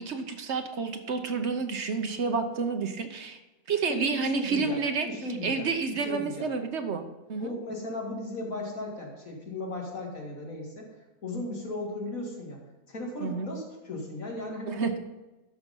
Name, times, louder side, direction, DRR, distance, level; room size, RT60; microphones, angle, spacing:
voice 1, 0.0-3.4 3.7-5.1 5.4-7.5 13.2-13.5 14.7-15.0, right 4 dB, 55° right, 7 dB, 1.1 m, -29 dB
voice 2, 3.9-6.5 7.4-10.9 11.2-12.6 12.9-15.0, left 1 dB, 75° left, -1 dB, 2.7 m, -36 dB
13.5 x 5.6 x 5.4 m, 1.1 s
omnidirectional pair, 1.4 m